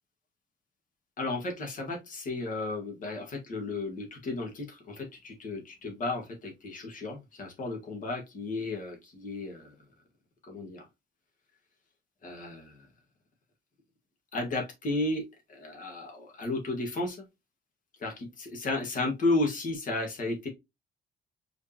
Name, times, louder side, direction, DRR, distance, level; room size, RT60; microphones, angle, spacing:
voice 1, 1.2-9.7 10.5-10.8 12.2-12.7 14.3-15.2 15.5-17.2 18.0-20.5, left 2 dB, 40° left, 2 dB, 1.7 m, -33 dB
4.8 x 3.4 x 2.8 m, 0.21 s
cardioid pair, 170°, 20 cm